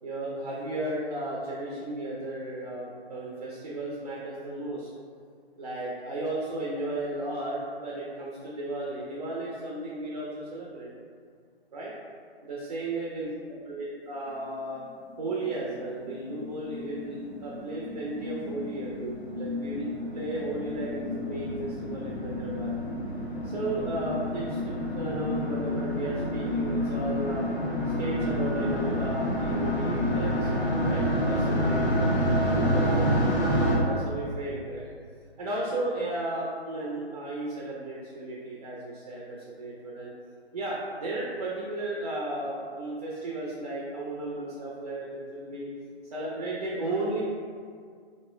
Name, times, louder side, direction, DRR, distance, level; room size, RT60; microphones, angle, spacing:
voice 1, 0.0-4.9 5.5-10.9 11.7-11.9 12.4-13.3 13.7-14.8 15.2-22.7 23.4-27.4 28.0-33.1 33.6-34.9 35.4-40.1 40.5-45.7 46.1-47.2, right 1 dB, 40° right, -5 dB, 0.4 m, -34 dB
sound 1, 15.2-33.8, equal, 85° left, 0.8 m, -29 dB
3.0 x 2.5 x 2.2 m, 2.1 s
figure-of-eight pair, 135°, 33 cm